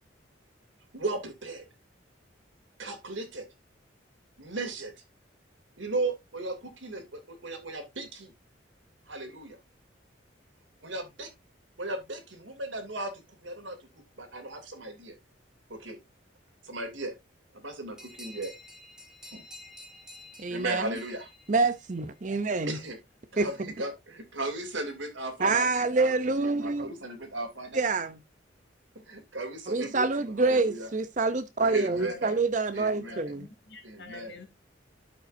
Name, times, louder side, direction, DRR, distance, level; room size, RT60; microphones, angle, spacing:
voice 1, 0.9-1.7 2.8-3.4 4.4-4.9 5.8-8.3 9.1-9.6 10.8-11.3 11.8-13.1 13.4-13.8 14.2-15.1 15.7-16.0 16.6-17.1 17.5-18.5 19.3-19.4 20.5-21.3 22.7-23.0 23.3-23.9 24.3-25.7 26.1-27.8 28.9-30.9 31.6-32.4 32.7-33.2 33.8-34.3, right 2 dB, 80° right, 2.7 m, -36 dB
sound 1, 18.0-22.2, left 1 dB, 5° right, 2.2 m, -50 dB
voice 2, 20.4-20.9 21.5-22.8 23.4-23.5 25.4-26.9 27.7-28.2 29.7-33.4, right 3 dB, 40° right, 0.6 m, -26 dB
voice 3, 32.0-32.4 33.0-34.5, left 4 dB, 65° left, 2.5 m, -47 dB
12.5 x 5.5 x 2.6 m
head